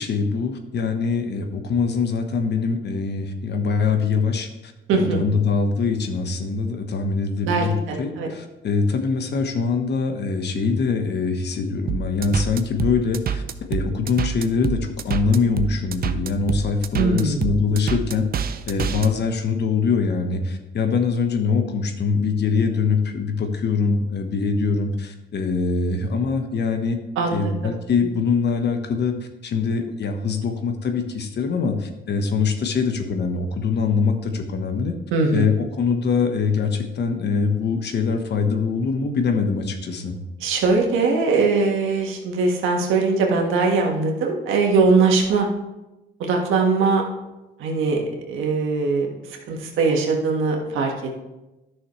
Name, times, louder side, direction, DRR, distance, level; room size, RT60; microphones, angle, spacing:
voice 1, 0.0-13.4 13.7-18.2 18.7-27.0 27.3-29.1 29.4-34.9 35.3-40.2, left 5 dB, 60° left, 6 dB, 1.2 m, -23 dB
voice 2, 4.9-5.2 7.4-8.3 17.0-17.5 27.1-27.5 35.1-35.5 40.4-45.5 46.2-47.0 47.6-50.9, right 4 dB, 85° right, 1 dB, 1.6 m, -21 dB
sound 1, 11.9-19.1, right 7 dB, 50° right, 0.6 m, -26 dB
11.0 x 6.3 x 3.2 m, 1.0 s
cardioid pair, 90°, 20 cm